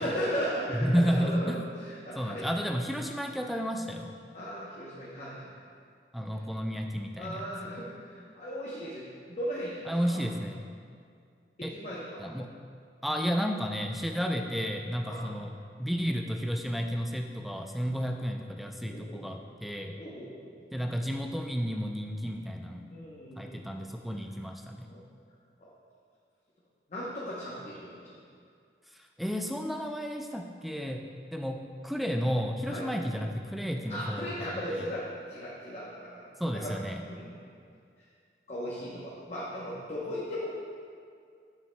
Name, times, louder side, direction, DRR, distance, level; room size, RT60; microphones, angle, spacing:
voice 1, 0.0-2.4 4.3-5.5 7.2-10.3 11.6-12.3 15.0-15.3 18.8-19.2 19.9-20.4 22.9-23.7 24.9-25.0 25.6-25.7 26.9-28.1 32.7-32.9 33.9-36.2 36.5-36.7 37.1-37.4 38.0-38.1 38.5-40.5, equal, 40° left, -6 dB, 0.8 m, -37 dB
voice 2, 0.7-1.6 2.2-4.1 6.1-7.7 9.9-10.7 11.6-11.7 12.2-12.5 13.0-19.9 20.7-22.9 23.4-24.9 29.2-31.0 31.3-31.6 31.8-34.9 36.4-37.0, equal, ahead, 3 dB, 0.3 m, -32 dB
8.3 x 7.3 x 2.2 m, 2.3 s
head